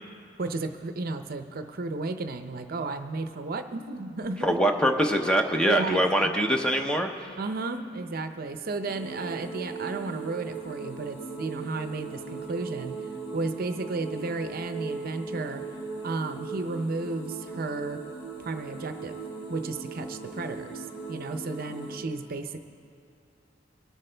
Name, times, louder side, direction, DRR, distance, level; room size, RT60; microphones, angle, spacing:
voice 1, 0.4-4.6 5.6-6.6 7.4-13.0 13.3-15.6 16.0-18.0 18.4-19.1 19.5-22.6, right 3 dB, 50° right, 8 dB, 0.6 m, -33 dB
voice 2, 4.4-7.1, equal, 5° left, 4 dB, 0.6 m, -23 dB
sound 1, 8.8-22.0, right 4 dB, 65° left, 1.8 m, -38 dB
22.0 x 8.1 x 3.3 m, 2.7 s
head